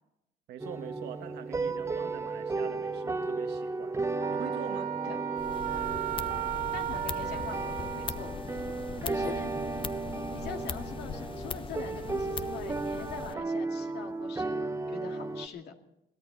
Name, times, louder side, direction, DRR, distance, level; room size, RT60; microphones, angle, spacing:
voice 1, 0.5-4.0 4.3-4.9, right 9 dB, 75° right, 1.6 m, -44 dB
sound 1, 0.6-15.5, right 3 dB, 15° right, 0.8 m, -35 dB
Wind instrument woodwind instrument, 4.2-8.3, right 12 dB, 50° right, 0.6 m, -35 dB
voice 2, 5.0-5.4 6.7-8.7 9.0-9.5 10.1-15.7, left 7 dB, 75° left, 2.3 m, -44 dB
sound 2, 5.4-13.3, left 6 dB, 30° left, 0.7 m, -40 dB
22.5 x 15.5 x 4.1 m
cardioid pair, 110°, 17 cm